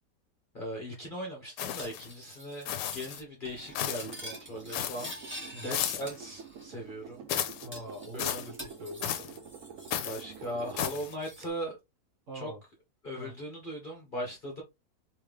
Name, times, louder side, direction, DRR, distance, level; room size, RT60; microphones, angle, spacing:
voice 1, 0.5-5.1 5.6-7.2 8.1-8.2 10.0-11.8 12.3-12.5 13.0-14.6, equal, 35° left, 1.0 m, -39 dB
sound 1, 1.6-2.1 2.6-3.2 3.7-4.2 4.7-5.2 5.7-6.2 7.3-7.7 8.2-8.5 9.0-9.4 9.9-10.2 10.8-11.1, left 10 dB, 80° left, 1.2 m, -34 dB
Cutlery silverware, 1.8-2.6 2.9-3.2 3.5-5.7 6.1-6.8 7.1-7.2 7.7-10.0 10.3-11.5, equal, 5° right, 1.7 m, -47 dB
sound 2, 3.7-11.4, right 6 dB, 65° right, 0.8 m, -48 dB
voice 2, 7.6-9.1 12.3-12.6 13.2-13.3, equal, 50° right, 1.5 m, -43 dB
3.5 x 3.2 x 3.2 m
omnidirectional pair, 1.9 m